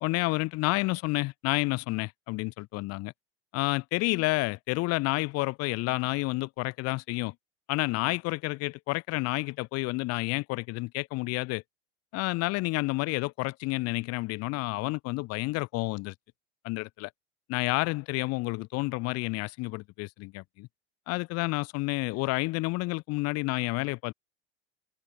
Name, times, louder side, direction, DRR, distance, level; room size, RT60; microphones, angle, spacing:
voice 1, 0.0-3.1 3.5-7.3 7.7-11.6 12.1-16.1 16.6-17.1 17.5-20.7 21.1-24.1, left 23 dB, 45° left, 0.7 m, -30 dB
hypercardioid pair, 80°, 36 cm